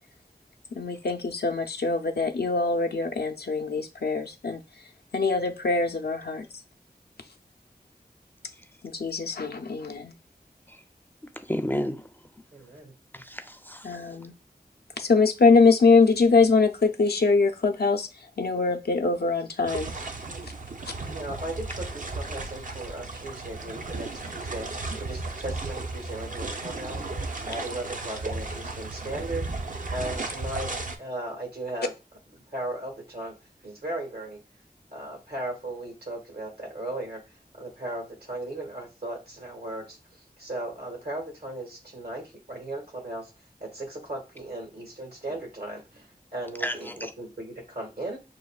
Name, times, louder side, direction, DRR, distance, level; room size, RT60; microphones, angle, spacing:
voice 1, 0.7-4.6 5.1-6.5 8.8-10.1 13.8-14.3 15.0-18.1 18.4-19.9, left 4 dB, 80° left, 0.5 m, -23 dB
voice 2, 11.4-12.1 13.1-14.0 46.6-47.1, equal, 10° left, 0.4 m, -32 dB
voice 3, 12.5-12.9 20.3-20.5 21.1-30.7 31.0-31.9 32.3-33.4 33.6-34.4 34.9-37.2 37.6-43.3 43.6-48.2, right 1 dB, 75° right, 1.6 m, -37 dB
sound 1, 19.7-31.0, right 3 dB, 55° right, 0.6 m, -35 dB
6.5 x 2.2 x 2.3 m
wide cardioid pair, 45°, 16 cm